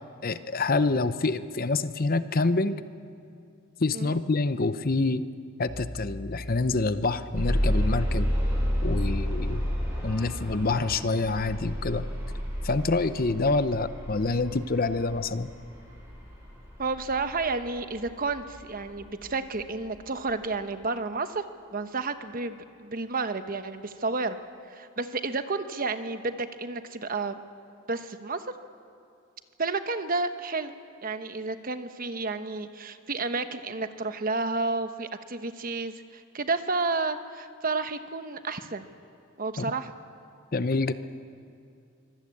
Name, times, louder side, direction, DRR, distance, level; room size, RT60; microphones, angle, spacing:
voice 1, 0.2-2.8 3.8-5.2 5.6-8.3 8.8-9.7 10.0-12.1 12.6-15.5 39.6-39.7 40.5-40.9, left 3 dB, 45° left, 12 dB, 0.7 m, -26 dB
sound 1, 7.3-19.2 20.0-20.1 20.5-20.6, equal, 10° right, 5.9 m, -31 dB
sound 2, 16.4-17.0, left 1 dB, 25° left, 4.7 m, -47 dB
voice 2, 16.8-21.4 21.7-24.4 24.7-27.4 27.9-28.5 29.6-30.7 31.0-38.9 39.4-39.9, right 3 dB, 45° right, 9 dB, 1.0 m, -31 dB
24.5 x 19.0 x 8.6 m, 2.5 s
head